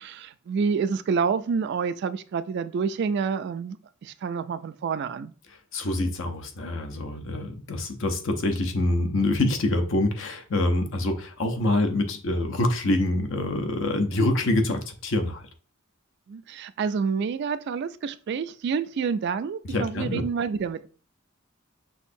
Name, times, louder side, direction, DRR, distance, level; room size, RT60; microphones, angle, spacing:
voice 1, 0.0-5.3 16.3-20.9, right 5 dB, 55° right, 0.3 m, -28 dB
voice 2, 5.7-15.4 19.6-20.2, left 1 dB, 65° left, 0.7 m, -25 dB
6.2 x 2.7 x 2.6 m
head